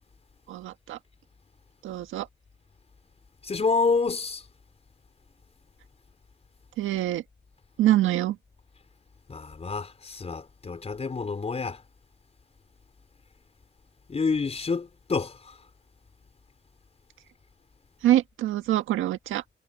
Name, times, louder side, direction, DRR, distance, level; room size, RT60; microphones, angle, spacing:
voice 1, 0.5-1.0 1.8-2.3 6.8-7.2 7.8-8.3 18.0-19.4, right 13 dB, 85° right, 1.6 m, -25 dB
voice 2, 3.4-4.4 9.3-11.8 14.1-15.6, left 4 dB, 30° left, 4.8 m, -28 dB
cardioid pair, 90°, 20 cm